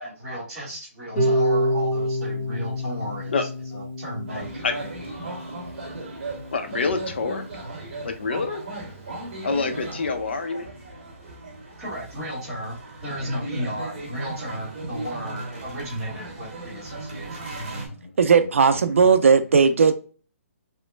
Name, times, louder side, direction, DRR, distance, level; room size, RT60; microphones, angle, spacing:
voice 1, 0.0-3.3 3.7-4.9 11.8-17.5, equal, 5° right, -9 dB, 0.9 m, -34 dB
Harp, 1.2-7.2, equal, 25° left, 0.9 m, -28 dB
sound 1, 4.3-17.9, right 2 dB, 35° right, 1.1 m, -37 dB
voice 2, 6.5-7.5 8.0-8.6 9.4-10.7 17.6-18.1, left 4 dB, 45° left, 6 dB, 0.5 m, -27 dB
voice 3, 18.2-19.9, right 5 dB, 60° right, 9 dB, 0.4 m, -17 dB
3.0 x 2.1 x 3.2 m, 0.38 s
hypercardioid pair, 180°, 8 cm